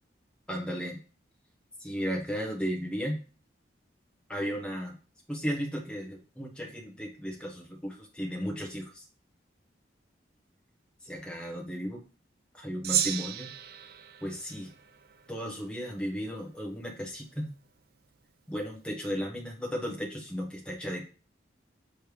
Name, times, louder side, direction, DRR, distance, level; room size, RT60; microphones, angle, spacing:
voice 1, 0.5-1.0 1.8-3.2 4.3-4.9 5.3-9.1 11.0-12.0 12.5-13.5 14.2-14.7 15.3-17.5 18.5-21.0, equal, 5° left, -1 dB, 1.0 m, -35 dB
Gong, 12.8-15.5, right 10 dB, 50° right, 0.5 m, -33 dB
6.5 x 3.3 x 4.8 m, 0.36 s
head